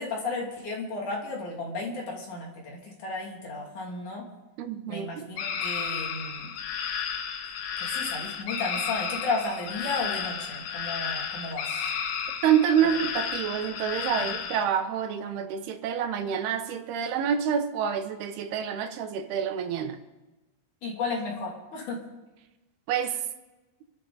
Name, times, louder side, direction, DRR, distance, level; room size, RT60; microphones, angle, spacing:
voice 1, 0.0-4.3 4.9-6.5 7.8-11.8 14.2-14.3 20.8-22.0, left 3 dB, 55° left, 4.0 m, -33 dB
voice 2, 4.6-5.3 12.4-20.0 22.9-23.2, right 8 dB, 85° right, 3.1 m, -27 dB
sound 1, 5.4-14.6, left 7 dB, 70° left, 2.8 m, -32 dB
27.0 x 12.5 x 4.0 m
omnidirectional pair, 4.4 m